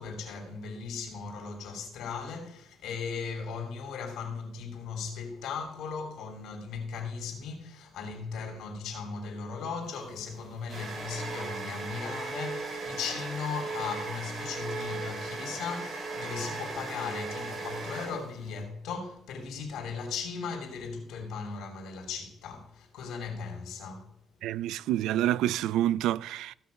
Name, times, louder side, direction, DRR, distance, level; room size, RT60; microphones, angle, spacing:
voice 1, 0.0-24.1, left 5 dB, 80° left, 2.7 m, -37 dB
sound 1, 9.9-18.6, right 3 dB, 45° right, 5.3 m, -37 dB
voice 2, 24.4-26.5, right 13 dB, 90° right, 0.3 m, -28 dB
15.5 x 5.9 x 5.2 m
cardioid pair, 90°, 0 cm